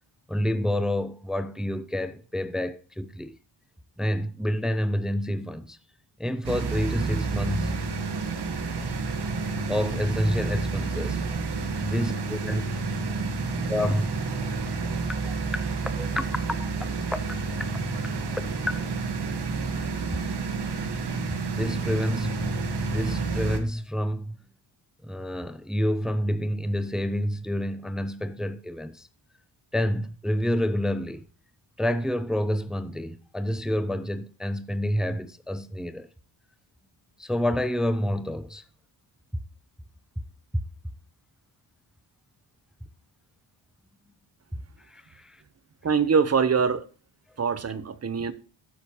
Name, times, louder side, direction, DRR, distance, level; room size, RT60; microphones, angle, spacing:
voice 1, 0.3-3.4 4.0-5.8 6.2-7.7 9.7-11.2 11.8-12.6 13.7-14.2 15.2-15.4 15.7-16.7 17.3-17.4 18.5-18.9 21.5-22.4 22.9-24.4 25.0-29.1 29.7-31.2 31.8-36.1 37.2-38.6 40.5-40.6 44.9-45.4, equal, ahead, 0.5 m, -28 dB
sound 1, 6.4-23.6, right 4 dB, 55° right, 1.5 m, -29 dB
voice 2, 45.8-46.8 47.4-48.3, right 6 dB, 30° right, 0.9 m, -23 dB
15.5 x 6.4 x 3.0 m
cardioid pair, 95°, 49 cm